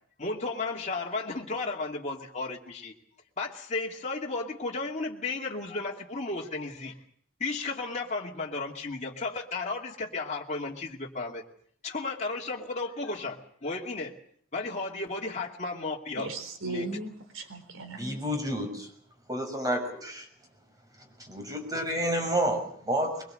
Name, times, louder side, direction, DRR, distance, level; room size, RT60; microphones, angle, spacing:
voice 1, 0.2-2.9 3.4-7.0 7.4-11.4 11.8-14.1 14.5-16.3 16.6-16.9, left 3 dB, 35° left, 2.5 m, -34 dB
voice 2, 16.2-18.2, right 2 dB, 90° right, 3.8 m, -37 dB
voice 3, 18.0-18.9 19.3-20.2 21.2-23.2, equal, 20° right, 6.3 m, -30 dB
23.0 x 22.0 x 7.8 m
head